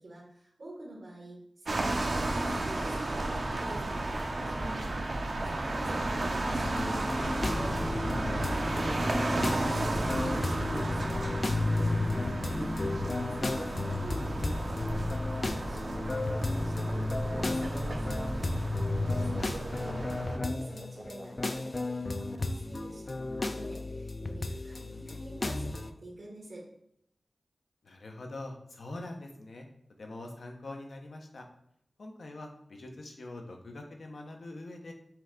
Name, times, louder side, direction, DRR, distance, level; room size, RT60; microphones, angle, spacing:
voice 1, 0.0-6.7 7.4-18.5 19.3-26.7, right 1 dB, 85° right, -4 dB, 1.3 m, -48 dB
sound 1, 1.7-20.4, right 2 dB, 70° right, 0.6 m, -33 dB
sound 2, 6.6-25.9, left 2 dB, 45° left, 0.3 m, -33 dB
sound 3, 7.2-22.0, right 1 dB, 20° right, 0.5 m, -43 dB
voice 2, 27.8-29.7 30.0-31.5 32.0-34.9, left 2 dB, 90° left, 2 dB, 0.7 m, -43 dB
5.7 x 2.3 x 3.6 m, 0.71 s
wide cardioid pair, 70°, 0 cm